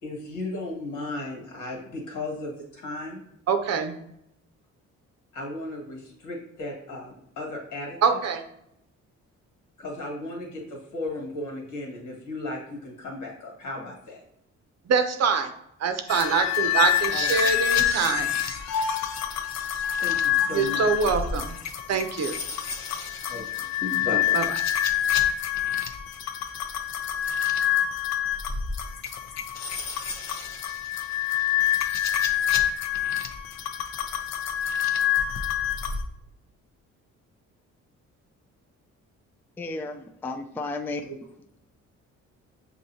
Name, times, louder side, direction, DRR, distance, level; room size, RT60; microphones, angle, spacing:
voice 1, 0.0-3.2 5.3-8.2 9.8-14.2 17.1-17.5 20.0-20.9 23.3-24.4, left 2 dB, 80° left, -1 dB, 1.7 m, -35 dB
voice 2, 3.5-3.9 8.0-8.4 14.9-15.5 15.8-18.3 20.5-21.5 21.9-22.3 24.3-24.4, right 5 dB, 60° right, 7 dB, 0.7 m, -24 dB
sound 1, 16.1-36.0, left 10 dB, 60° left, 0.6 m, -27 dB
voice 3, 39.6-41.0, left 3 dB, 5° left, 5 dB, 0.3 m, -33 dB
6.2 x 2.7 x 2.7 m, 0.79 s
cardioid pair, 90°, 30 cm